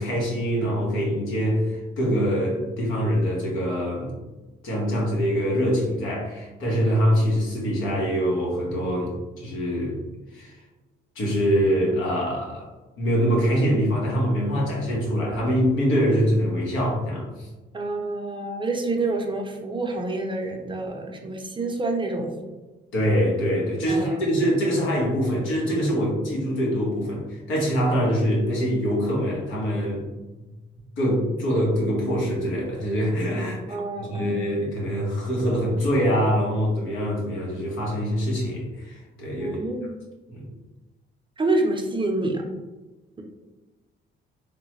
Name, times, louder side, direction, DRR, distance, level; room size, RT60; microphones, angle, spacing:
voice 1, 0.0-4.1 4.6-10.0 10.3-10.6 11.1-12.7 13.0-17.5 22.9-30.0 31.0-33.6 34.1-39.6 40.3-40.4, equal, 85° left, -3 dB, 1.2 m, -24 dB
voice 2, 17.7-22.3 23.9-24.2 33.7-34.5 39.4-40.0 41.4-42.4, right 2 dB, 25° right, 2 dB, 0.6 m, -27 dB
3.6 x 2.2 x 3.1 m, 1.2 s
cardioid pair, 90°, 20 cm